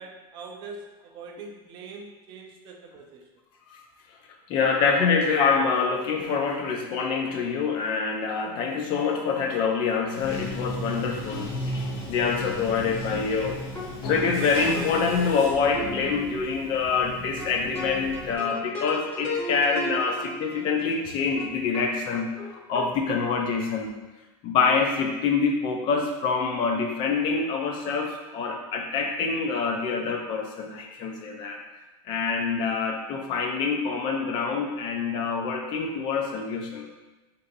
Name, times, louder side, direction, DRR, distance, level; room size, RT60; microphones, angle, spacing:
voice 1, 0.0-3.3 21.0-21.1, right 4 dB, 40° right, 2 dB, 0.4 m, -43 dB
voice 2, 4.5-11.5 12.1-13.6 14.0-23.9 24.4-31.6 32.0-36.8, left 5 dB, 40° left, 2 dB, 0.4 m, -26 dB
Bathtub (filling or washing), 10.2-18.3, left 1 dB, 75° left, 0.7 m, -35 dB
sound 1, 13.7-13.9 14.1-16.6 16.9-17.0 17.4-20.9 21.4-21.5 21.7-21.9 22.1-22.8, left 1 dB, 20° left, 0.9 m, -35 dB
2.6 x 2.5 x 3.8 m, 1.1 s
supercardioid pair, 165°, 13 cm